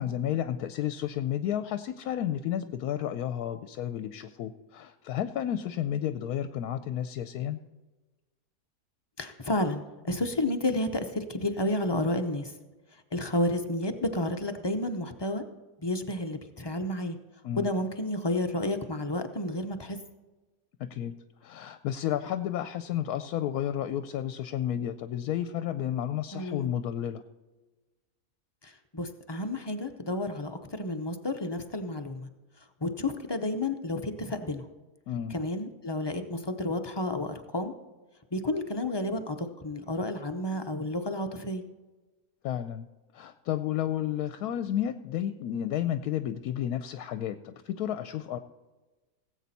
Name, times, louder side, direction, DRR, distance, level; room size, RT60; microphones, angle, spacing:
voice 1, 0.0-7.6 17.4-17.7 20.8-21.2 21.4-27.2 35.1-35.4 42.4-42.9 43.1-48.4, left 10 dB, 80° left, 11 dB, 1.1 m, -32 dB
voice 2, 9.2-12.5 13.1-15.4 15.8-17.2 17.5-20.0 26.3-26.7 28.6-32.3 32.8-34.7 35.3-37.7 38.3-41.6, left 1 dB, 30° left, 6 dB, 0.4 m, -31 dB
18.0 x 8.2 x 4.1 m, 1.2 s
omnidirectional pair, 1.6 m